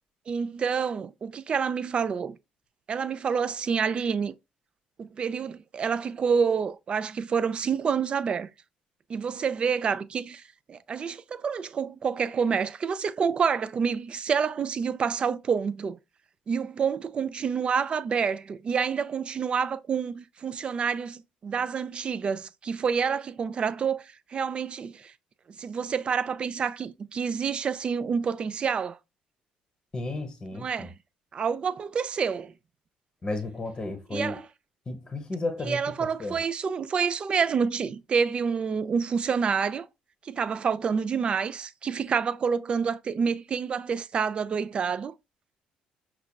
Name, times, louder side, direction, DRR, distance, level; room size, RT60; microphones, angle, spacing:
voice 1, 0.3-2.4 2.9-4.3 5.0-8.5 9.1-10.4 10.7-16.0 16.5-25.1 25.6-29.0 30.5-31.0 31.3-32.5 34.1-34.4 35.7-39.9 40.2-45.1, right 6 dB, 40° right, 0.4 m, -28 dB
voice 2, 29.9-30.9 33.2-34.4 34.9-36.4, left 2 dB, 25° left, 0.8 m, -33 dB
5.6 x 2.3 x 2.2 m
cardioid pair, 95°, 3 cm